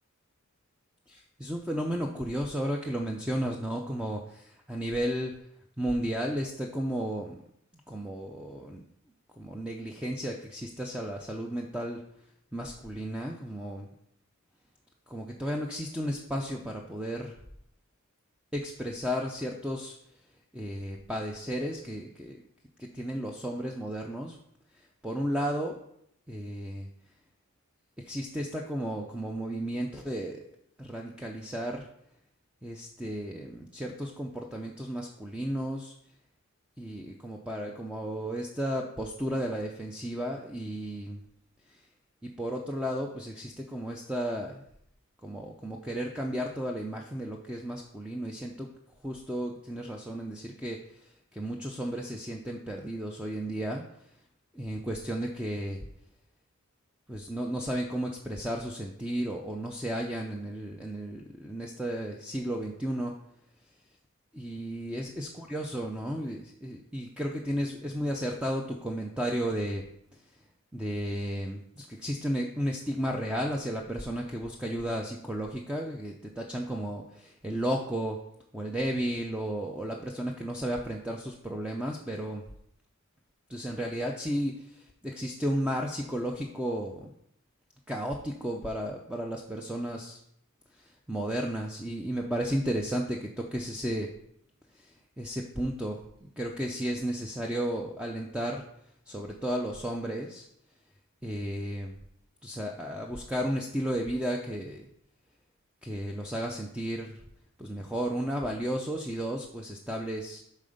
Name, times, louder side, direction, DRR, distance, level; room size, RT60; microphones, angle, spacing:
voice 1, 1.1-5.3 5.8-7.4 7.9-8.8 9.4-12.0 12.5-13.9 15.1-17.3 18.5-20.0 20.5-22.4 22.8-24.4 25.0-25.8 26.3-26.9 28.1-30.4 30.8-31.9 32.6-35.9 36.8-41.2 41.7-41.8 42.4-44.6 45.2-48.7 49.0-53.8 54.5-55.8 57.1-63.1 64.3-69.8 70.7-78.2 78.5-82.4 83.5-87.1 87.9-90.2 90.7-94.1 94.7-98.6 99.1-100.5 101.2-102.0 102.4-104.9 105.8-107.2 107.6-110.4, equal, 5° right, 1 dB, 0.5 m, -33 dB
7.4 x 4.3 x 5.1 m, 0.74 s
head